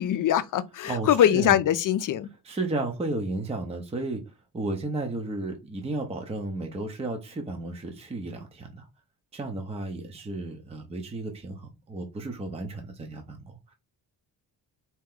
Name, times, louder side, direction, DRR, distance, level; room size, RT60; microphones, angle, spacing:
voice 1, 0.0-2.3, left 10 dB, 55° left, 0.6 m, -22 dB
voice 2, 0.9-1.6 2.4-8.9 9.3-13.7, right 2 dB, 15° right, 0.7 m, -33 dB
4.3 x 3.0 x 3.7 m
wide cardioid pair, 180°, 39 cm